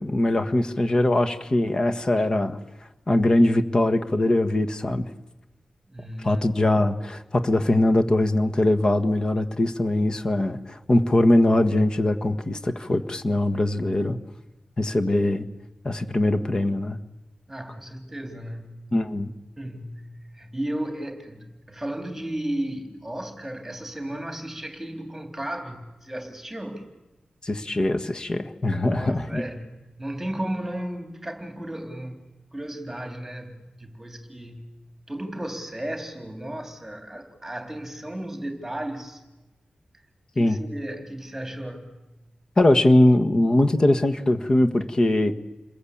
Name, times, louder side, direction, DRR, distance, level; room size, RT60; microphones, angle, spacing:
voice 1, 0.0-2.6 3.1-5.1 6.2-14.2 14.8-15.4 15.8-17.0 18.9-19.3 27.4-29.4 40.4-40.6 42.6-45.3, left 1 dB, 30° left, 7 dB, 1.5 m, -21 dB
voice 2, 5.9-6.5 17.5-18.8 19.6-26.9 28.8-32.2 32.5-34.7 35.1-39.2 40.4-41.9, right 1 dB, 10° right, 5 dB, 3.6 m, -34 dB
29.0 x 21.0 x 8.7 m, 1.0 s
wide cardioid pair, 125°, 2 cm